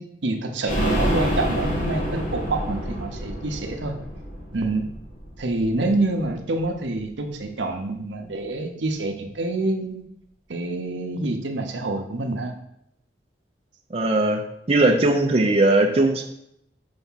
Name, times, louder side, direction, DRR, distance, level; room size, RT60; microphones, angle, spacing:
voice 1, 0.0-4.0 4.5-5.0 5.4-10.0 10.5-12.6, right 2 dB, 80° right, 4 dB, 0.8 m, -27 dB
sound 1, 0.6-6.3 6.6-6.7 7.0-7.1, equal, 45° left, 1.2 m, -28 dB
voice 2, 13.9-14.4 14.7-16.2, right 2 dB, 35° right, 1 dB, 0.6 m, -19 dB
5.4 x 3.5 x 5.6 m, 0.75 s
head